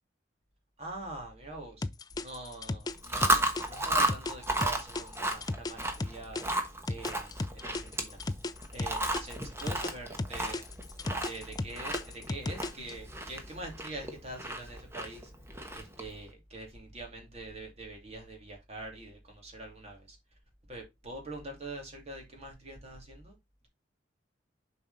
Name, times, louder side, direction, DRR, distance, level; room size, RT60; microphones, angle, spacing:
voice 1, 0.8-1.9 2.1-6.4 6.9-8.2 8.7-10.6 11.2-15.3 15.7-20.2 20.7-23.3, right 2 dB, 35° right, 2.5 m, -44 dB
sound 1, 1.8-6.4 6.9-9.9 10.2-12.9, left 2 dB, 20° left, 0.4 m, -35 dB
Chewing mastication, 2.9-16.1, right 1 dB, 15° right, 1.1 m, -34 dB
7.1 x 4.7 x 4.0 m
head